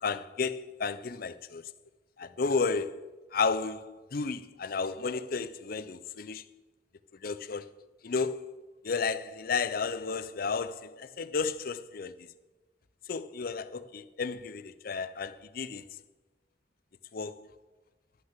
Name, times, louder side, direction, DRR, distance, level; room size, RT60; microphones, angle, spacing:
voice 1, 0.0-1.6 2.2-6.4 7.2-7.7 8.0-8.6 8.8-12.1 13.1-15.8 17.1-17.4, left 4 dB, 55° left, 0.5 m, -32 dB
11.5 x 6.3 x 7.3 m
head